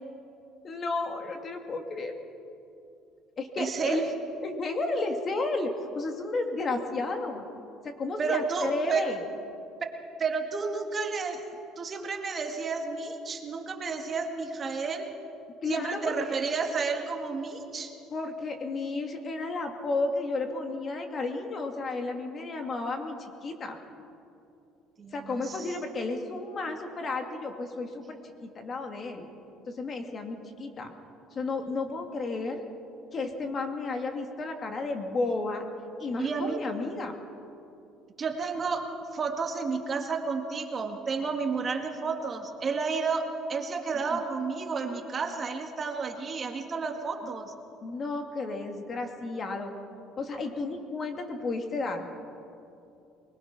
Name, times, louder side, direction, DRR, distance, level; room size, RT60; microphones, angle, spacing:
voice 1, 0.6-2.1 3.4-4.0 4.4-7.4 7.8-9.2 15.6-16.1 18.1-23.8 25.1-29.3 29.7-30.9 31.3-32.6 33.1-35.6 36.0-37.1 44.1-44.2 47.8-49.7 50.2-52.1, left 3 dB, 35° left, 4 dB, 2.4 m, -32 dB
voice 2, 3.6-4.1 8.2-9.1 10.2-11.4 11.8-15.1 15.7-17.9 25.0-25.8 36.2-36.6 38.2-47.5, right 4 dB, 30° right, 4 dB, 1.9 m, -31 dB
24.0 x 21.0 x 6.0 m, 2.6 s
cardioid pair, 110°, 0 cm